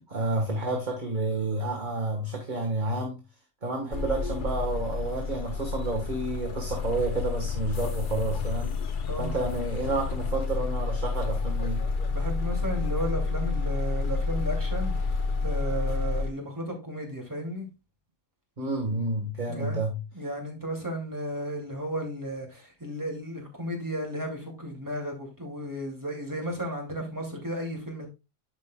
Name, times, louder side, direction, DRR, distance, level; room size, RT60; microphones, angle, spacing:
voice 1, 0.1-3.2 3.6-8.7 9.2-11.9 18.6-20.0, right 2 dB, 35° right, 1.5 m, -30 dB
sound 1, 3.9-16.3, left 4 dB, 45° left, 0.7 m, -29 dB
voice 2, 9.1-9.4 12.1-17.7 19.5-19.8 20.1-28.1, equal, 15° right, 2.5 m, -34 dB
12.5 x 5.3 x 2.3 m
omnidirectional pair, 1.4 m